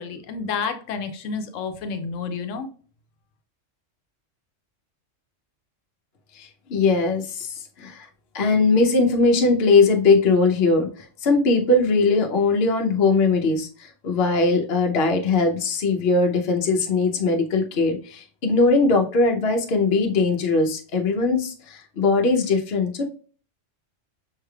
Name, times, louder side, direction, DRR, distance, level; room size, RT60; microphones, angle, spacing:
voice 1, 0.0-2.7, left 5 dB, 90° left, 6 dB, 1.0 m, -30 dB
voice 2, 6.4-8.1 8.3-23.1, left 3 dB, 55° left, 3 dB, 0.9 m, -20 dB
5.6 x 3.3 x 2.3 m, 0.40 s
omnidirectional pair, 1.3 m